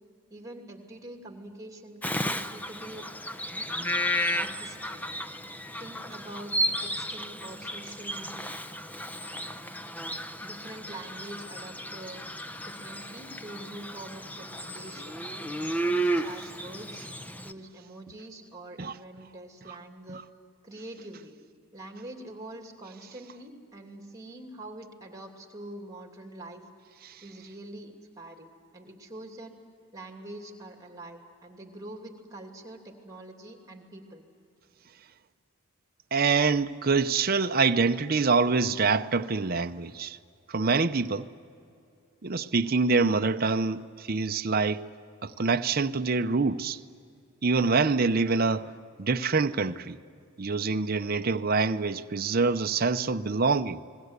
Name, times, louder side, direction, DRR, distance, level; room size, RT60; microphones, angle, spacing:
voice 1, 0.3-3.1 4.3-5.1 5.8-8.6 10.4-12.2 12.6-15.2 15.7-17.1 17.4-20.2 20.6-21.3 21.7-26.7 27.2-29.5 29.9-34.2, right 1 dB, 15° right, 2.8 m, -45 dB
Bird vocalization bird call bird song, 2.0-17.5, equal, 5° left, 0.7 m, -33 dB
voice 2, 36.1-40.2 40.5-41.3 42.2-44.8 45.2-46.8 47.4-48.7 49.0-50.0 50.4-53.8, right 4 dB, 40° right, 0.7 m, -25 dB
29.0 x 21.5 x 8.2 m
head